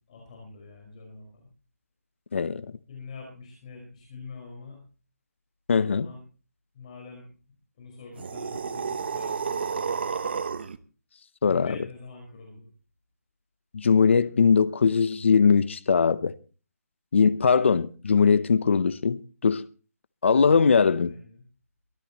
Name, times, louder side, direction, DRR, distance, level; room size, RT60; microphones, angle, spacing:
voice 1, 0.1-1.5 2.9-4.8 5.7-6.2 6.7-7.3 7.8-10.1 11.4-12.7 14.0-14.5 21.0-21.4, left 4 dB, 25° left, 5.1 m, -45 dB
voice 2, 2.3-2.6 5.7-6.1 11.4-11.7 13.7-16.3 17.1-19.6 20.2-21.1, left 5 dB, 50° left, 0.7 m, -21 dB
sound 1, 8.1-10.8, right 6 dB, 40° right, 0.9 m, -31 dB
23.5 x 12.0 x 3.0 m
hypercardioid pair, 175°, 9 cm